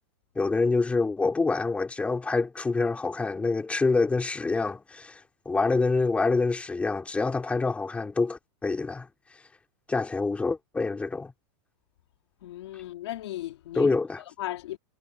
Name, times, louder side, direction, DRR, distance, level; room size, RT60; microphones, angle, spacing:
voice 1, 0.3-9.1 9.9-11.3 13.7-14.2, left 3 dB, 10° left, 2.7 m, -26 dB
voice 2, 12.4-14.0 14.4-14.8, left 14 dB, 75° left, 3.4 m, -36 dB
supercardioid pair, 155°, 14 cm